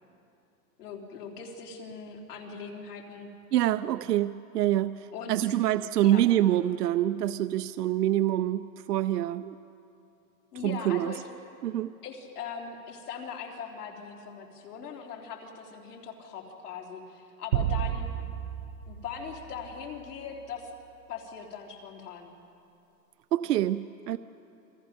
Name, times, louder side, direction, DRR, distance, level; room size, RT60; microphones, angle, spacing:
voice 1, 0.8-3.3 5.1-5.6 6.0-6.3 10.5-11.3 12.0-18.1 18.9-20.7 21.1-22.3, left 6 dB, 70° left, 0 dB, 3.9 m, -40 dB
voice 2, 3.5-9.6 10.6-11.1 11.6-11.9 23.3-24.2, right 13 dB, 75° right, 11 dB, 0.7 m, -26 dB
sound 1, 17.5-20.1, right 11 dB, 40° right, 1.0 m, -32 dB
30.0 x 23.0 x 5.3 m, 2.7 s
hypercardioid pair, 155°, 48 cm